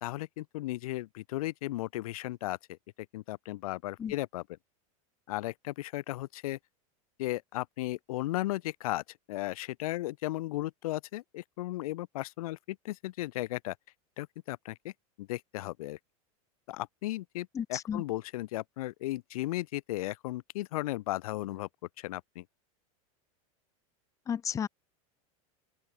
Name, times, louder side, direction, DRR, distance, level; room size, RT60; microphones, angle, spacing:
voice 1, 0.0-2.8 3.1-4.4 5.3-6.6 7.2-13.7 14.2-14.9 15.2-16.0 16.7-21.7 22.0-22.4, left 17 dB, 75° left, 3.3 m, -35 dB
voice 2, 17.5-18.0 24.3-24.7, left 8 dB, 15° left, 1.1 m, -33 dB
open air
supercardioid pair, 160°, 19 cm